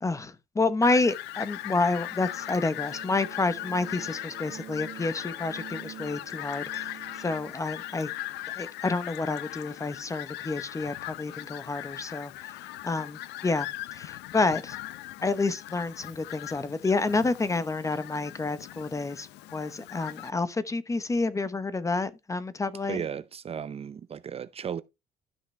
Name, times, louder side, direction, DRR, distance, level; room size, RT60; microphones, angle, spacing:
voice 1, 0.0-6.9 7.2-8.1 8.6-12.5 12.8-14.8 15.2-23.0, left 3 dB, 20° left, 0.9 m, -29 dB
Fowl, 0.8-20.3, left 16 dB, 85° left, 0.6 m, -39 dB
sound 1, 1.6-10.2, right 12 dB, 60° right, 2.0 m, -48 dB
voice 2, 22.9-24.8, right 8 dB, 35° right, 0.6 m, -35 dB
13.0 x 5.9 x 3.3 m
cardioid pair, 110°, 17 cm